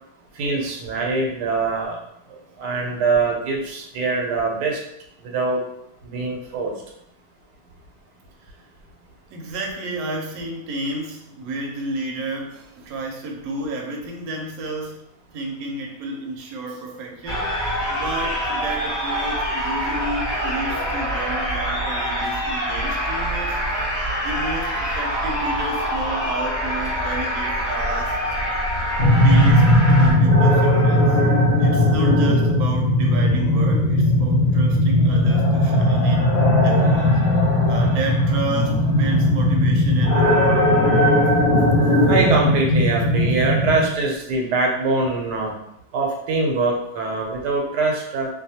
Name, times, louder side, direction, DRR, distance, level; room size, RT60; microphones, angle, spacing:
voice 1, 0.3-2.0 2.3-4.8 5.2-5.6 6.0-6.7 42.1-45.5 45.9-48.3, right 3 dB, 90° right, 1 dB, 1.2 m, -23 dB
voice 2, 9.3-15.0 15.3-17.5 17.9-23.6 24.2-28.2 29.0-29.6 29.9-31.1 31.6-36.3 36.6-37.2 37.7-40.8, right 2 dB, 70° right, 1 dB, 1.0 m, -31 dB
sound 1, 17.3-30.1, equal, 10° left, 0.8 m, -25 dB
sound 2, 29.0-43.8, left 1 dB, 65° left, 1.0 m, -17 dB
2.6 x 2.2 x 2.7 m, 0.79 s
omnidirectional pair, 1.8 m